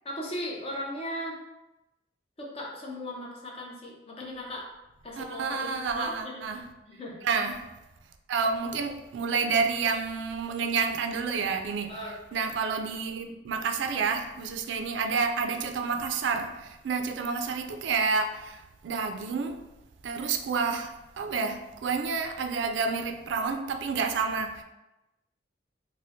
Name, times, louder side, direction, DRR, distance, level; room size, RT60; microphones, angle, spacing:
voice 1, 0.0-1.4 2.4-4.7 5.0-6.4 6.9-7.2 11.9-12.2, left 1 dB, 35° left, -2 dB, 0.7 m, -37 dB
voice 2, 5.2-6.7 7.2-7.6 8.3-12.0 12.3-19.6 20.0-24.6, right 5 dB, 75° right, 6 dB, 0.3 m, -29 dB
4.2 x 2.1 x 2.6 m, 0.98 s
head